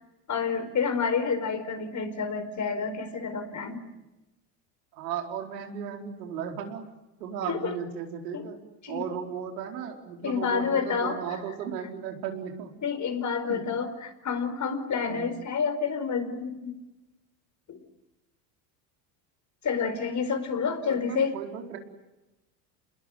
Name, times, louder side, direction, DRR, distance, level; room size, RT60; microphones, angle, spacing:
voice 1, 0.3-3.8 7.5-7.8 8.3-8.4 8.8-9.0 10.2-11.4 12.8-16.7 17.7-17.8 19.6-21.4, left 6 dB, 35° left, 9 dB, 4.8 m, -29 dB
voice 2, 4.9-6.8 7.2-8.6 8.9-12.7 13.5-13.6 15.1-15.3 20.9-21.8, right 8 dB, 80° right, 3 dB, 4.6 m, -35 dB
28.0 x 21.0 x 9.4 m, 1.0 s
hypercardioid pair, 85°, 48 cm